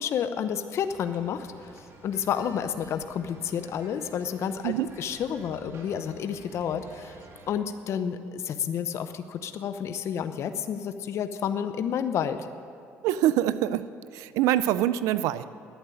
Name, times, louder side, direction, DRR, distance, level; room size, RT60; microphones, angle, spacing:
voice 1, 0.0-1.7 2.0-7.2 7.5-12.5, left 8 dB, 60° left, 10 dB, 0.8 m, -30 dB
sound 1, 0.8-7.5, right 2 dB, 50° right, 2.0 m, -51 dB
voice 2, 13.0-13.9 14.1-15.5, right 12 dB, 90° right, 15 dB, 0.5 m, -25 dB
11.5 x 9.0 x 9.8 m, 2.3 s
cardioid pair, 110°, 5 cm